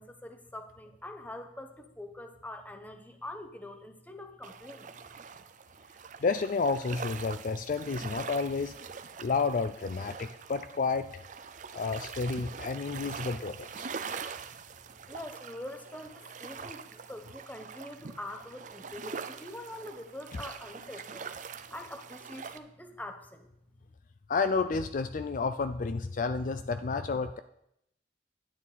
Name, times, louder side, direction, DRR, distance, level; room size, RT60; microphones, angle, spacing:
voice 1, 0.0-4.9 15.1-21.3 21.7-23.5, left 1 dB, 10° left, 7 dB, 0.9 m, -44 dB
sound 1, 4.4-22.6, right 6 dB, 45° right, 0.5 m, -44 dB
voice 2, 6.2-8.7 9.2-11.1 11.7-13.9 24.3-27.4, left 4 dB, 45° left, 9 dB, 0.4 m, -30 dB
11.0 x 9.5 x 4.2 m, 0.78 s
head